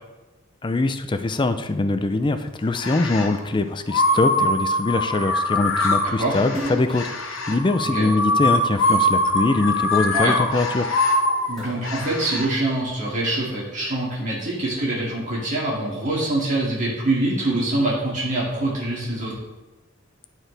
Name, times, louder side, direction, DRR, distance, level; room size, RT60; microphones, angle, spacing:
voice 1, 0.6-10.9, left 2 dB, 25° left, 9 dB, 0.4 m, -23 dB
sound 1, 2.8-3.4 3.9-12.5, left 1 dB, 70° left, 1.0 m, -23 dB
Splash splatter, 6.4-9.0 9.5-10.9 11.3-13.0, equal, ahead, 2.7 m, -37 dB
voice 2, 11.5-19.3, right 2 dB, 40° right, -6 dB, 2.3 m, -24 dB
12.5 x 4.6 x 3.4 m, 1.2 s
head